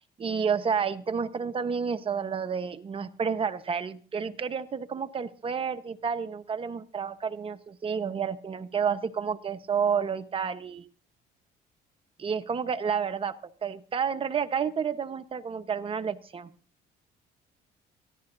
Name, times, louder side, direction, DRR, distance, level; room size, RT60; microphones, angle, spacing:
voice 1, 0.2-10.9 12.2-16.5, right 6 dB, 30° right, 10 dB, 1.1 m, -30 dB
24.5 x 15.0 x 2.7 m, 0.40 s
cardioid pair, 110°, 17 cm